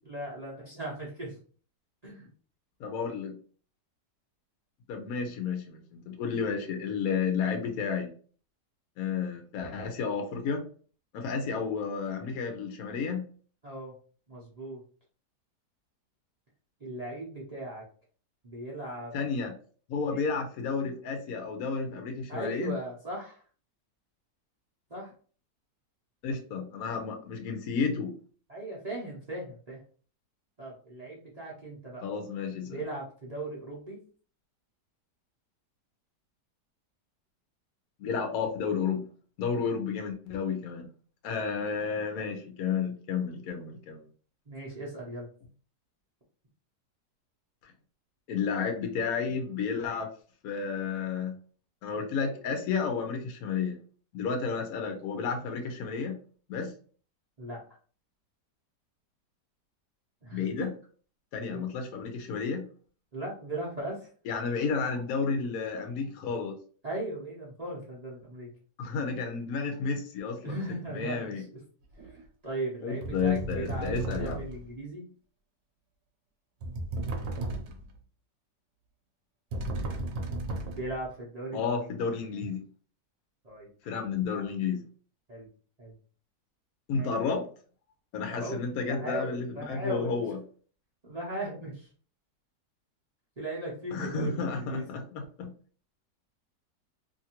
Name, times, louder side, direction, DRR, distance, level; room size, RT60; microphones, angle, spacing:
voice 1, 0.0-1.4 2.0-2.3 13.6-13.9 14.3-14.8 16.8-17.8 18.4-19.1 20.1-20.2 22.3-23.4 24.9-25.1 26.3-26.6 28.5-29.8 30.6-32.0 32.6-34.0 44.5-45.3 57.4-57.6 60.2-60.7 61.5-61.6 63.1-64.1 66.8-68.5 70.4-71.6 72.0-72.2 72.4-75.0 80.7-81.7 83.4-84.1 85.3-85.5 85.8-85.9 86.9-87.1 88.3-90.2 91.0-91.9 93.4-95.0, right 1 dB, 45° right, -5 dB, 0.5 m, -38 dB
voice 2, 2.8-3.4 4.9-8.1 9.0-10.6 11.1-13.2 19.1-19.5 19.9-22.8 26.2-28.1 32.0-32.8 38.0-39.1 39.4-40.9 41.2-44.0 47.6-47.7 48.3-50.1 50.4-51.4 51.8-53.8 54.1-56.2 56.5-56.7 60.3-60.7 61.3-62.6 64.3-66.6 68.8-71.4 72.8-74.4 81.5-82.6 83.8-84.8 86.9-87.5 88.1-90.4 93.9-95.5, left 5 dB, 70° left, 4 dB, 1.0 m, -31 dB
sound 1, 72.0-72.2 73.0-74.7 76.6-78.0 79.5-81.1, right 2 dB, 70° right, 1.1 m, -35 dB
2.8 x 2.5 x 2.8 m, 0.42 s
omnidirectional pair, 1.8 m